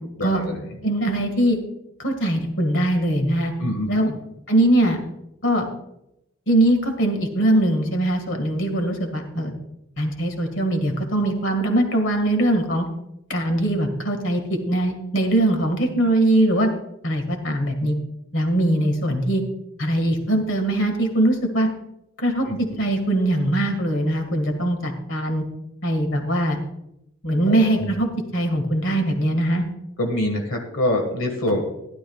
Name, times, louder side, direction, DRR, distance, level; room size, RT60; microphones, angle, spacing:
voice 1, 0.2-0.6 3.6-4.2 22.4-22.6 27.5-27.9 30.0-31.6, left 1 dB, 80° left, 2 dB, 1.7 m, -25 dB
voice 2, 0.8-1.6 2.0-3.5 3.9-4.1 4.5-5.0 5.4-5.7 6.5-9.5 10.0-12.9 13.3-16.7 17.0-18.0 18.3-19.4 19.8-21.7 22.2-25.4 25.8-26.6 27.2-29.7, right 1 dB, 65° left, 5 dB, 1.9 m, -21 dB
15.5 x 11.5 x 2.4 m, 0.83 s
head